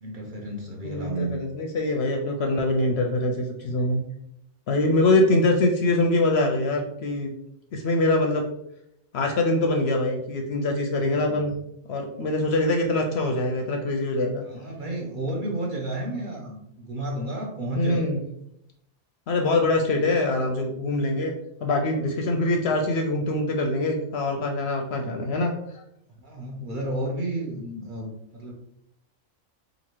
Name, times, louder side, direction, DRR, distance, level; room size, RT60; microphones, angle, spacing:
voice 1, 0.0-1.4 5.1-5.5 11.1-11.5 14.4-18.1 24.9-25.2 26.1-28.5, right 1 dB, 50° right, -1 dB, 0.7 m, -32 dB
voice 2, 0.8-4.0 4.7-7.3 7.7-8.4 9.1-11.5 11.9-14.4 17.8-18.2 19.3-21.3 21.6-25.8, left 2 dB, 65° left, 2 dB, 0.7 m, -24 dB
3.0 x 2.6 x 4.4 m, 0.77 s
omnidirectional pair, 1.3 m